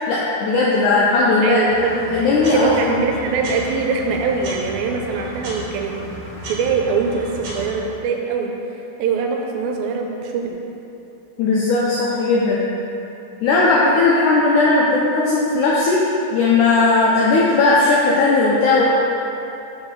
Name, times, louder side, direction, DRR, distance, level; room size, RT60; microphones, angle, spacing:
voice 1, 0.1-1.6 2.1-2.7 11.4-12.7 13.4-18.8, left 3 dB, 85° left, -5 dB, 1.8 m, -17 dB
voice 2, 1.4-1.9 2.5-5.9 6.5-8.5 9.0-10.6, right 5 dB, 80° right, 2 dB, 2.3 m, -22 dB
sound 1, 1.7-7.8, right 1 dB, 65° right, 1.7 m, -34 dB
6.4 x 4.7 x 4.4 m, 2.8 s
omnidirectional pair, 4.3 m